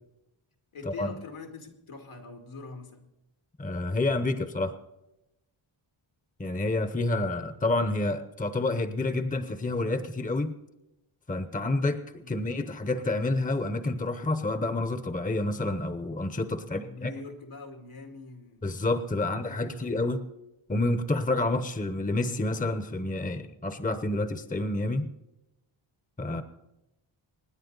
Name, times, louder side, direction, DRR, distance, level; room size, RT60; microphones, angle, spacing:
voice 1, 0.7-3.1 12.2-12.5 16.6-18.7 19.2-20.1 26.2-26.4, left 3 dB, 75° left, 4 dB, 2.3 m, -44 dB
voice 2, 3.6-4.7 6.4-10.5 11.3-17.1 18.6-20.2 20.7-25.1 26.2-26.4, left 2 dB, 15° left, 10 dB, 0.9 m, -29 dB
25.5 x 10.0 x 4.0 m, 0.92 s
wide cardioid pair, 90°, 49 cm